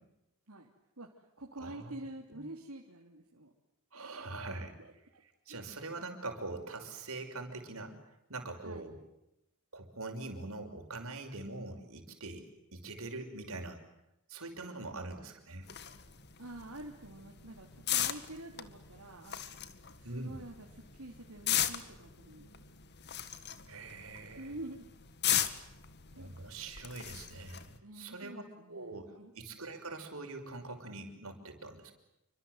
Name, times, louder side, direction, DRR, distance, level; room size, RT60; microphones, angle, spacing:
voice 1, 1.0-3.5 4.8-5.2 5.5-5.7 8.6-8.8 16.4-19.4 20.0-22.5 24.4-24.9 26.1-26.3 27.8-29.3, right 1 dB, 90° right, 0 dB, 3.2 m, -47 dB
voice 2, 1.6-1.9 2.3-2.4 3.9-4.8 5.5-8.0 8.3-9.0 9.7-13.8 14.3-15.7 20.0-20.4 23.7-24.5 26.2-28.4 28.7-31.9, right 2 dB, 75° right, 5 dB, 5.9 m, -43 dB
sound 1, 15.6-27.8, left 10 dB, 50° left, 1.9 m, -38 dB
29.0 x 25.0 x 8.1 m, 0.87 s
head